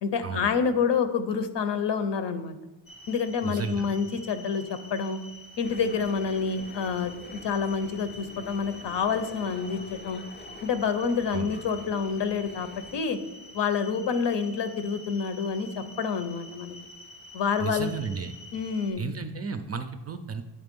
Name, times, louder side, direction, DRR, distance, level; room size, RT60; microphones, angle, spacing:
voice 1, 0.0-2.6 3.1-4.6 4.9-5.2 5.6-7.1 7.4-10.2 10.6-12.7 12.9-13.2 13.5-16.7 17.3-17.9 18.5-19.0, left 6 dB, 65° left, 10 dB, 0.8 m, -28 dB
sound 1, 2.9-18.9, left 1 dB, 90° left, 1.2 m, -47 dB
voice 2, 3.4-3.9 11.3-11.5 17.6-18.3 19.0-20.4, right 5 dB, 35° right, 8 dB, 0.4 m, -33 dB
sound 2, 5.6-13.0, left 3 dB, 25° left, 0.5 m, -47 dB
9.6 x 3.4 x 5.2 m, 0.99 s
wide cardioid pair, 160°, 45 cm